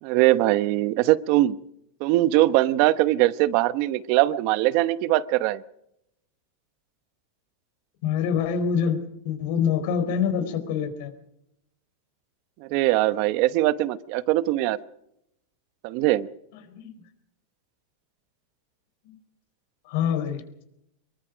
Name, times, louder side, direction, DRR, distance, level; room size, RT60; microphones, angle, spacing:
voice 1, 0.0-1.5 2.0-5.6 12.6-14.8 15.8-16.3, right 16 dB, 50° right, 16 dB, 0.9 m, -21 dB
voice 2, 8.0-11.1 16.7-16.9 19.9-20.4, left 7 dB, 60° left, 10 dB, 4.1 m, -25 dB
25.5 x 22.5 x 5.2 m, 0.79 s
supercardioid pair, 150°, 0 cm